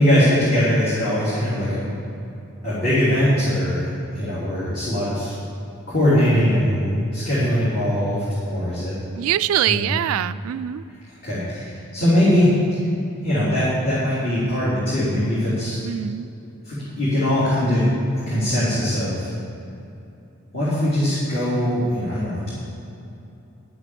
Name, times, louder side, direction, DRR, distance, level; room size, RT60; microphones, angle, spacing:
voice 1, 0.0-1.9 2.6-3.8 4.1-5.3 5.9-8.9 9.7-9.9 11.2-12.5 13.2-15.8 16.6-17.9 18.3-19.3 20.5-22.5, equal, 45° left, -11 dB, 3.3 m, -21 dB
voice 2, 9.1-10.8 15.8-16.3, right 11 dB, 80° right, 13 dB, 0.3 m, -23 dB
11.5 x 8.1 x 6.9 m, 2.8 s
head